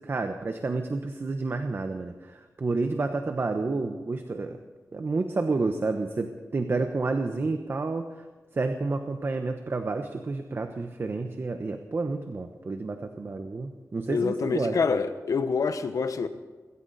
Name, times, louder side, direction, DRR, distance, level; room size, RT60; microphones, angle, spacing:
voice 1, 0.0-4.6 4.9-8.2 8.5-14.8, right 3 dB, 40° right, 6 dB, 1.1 m, -30 dB
voice 2, 14.1-16.3, left 5 dB, 70° left, 10 dB, 1.2 m, -26 dB
20.5 x 17.0 x 4.2 m, 1.4 s
wide cardioid pair, 120°, 6 cm